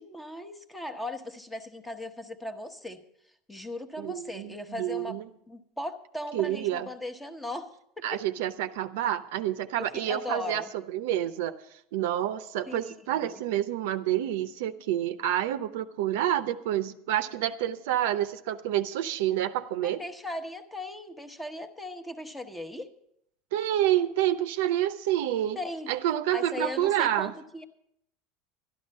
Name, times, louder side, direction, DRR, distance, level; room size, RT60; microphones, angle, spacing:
voice 1, 0.0-3.0 3.5-8.2 9.7-10.7 12.7-13.4 19.8-22.9 25.5-25.9 26.3-27.6, left 1 dB, 10° left, 8 dB, 0.9 m, -38 dB
voice 2, 4.0-5.2 6.3-6.9 8.0-10.6 10.9-11.6 11.9-20.0 23.5-25.6 25.9-27.3, right 12 dB, 80° right, 11 dB, 0.7 m, -28 dB
12.0 x 11.5 x 5.4 m, 0.73 s
supercardioid pair, 140°, 0 cm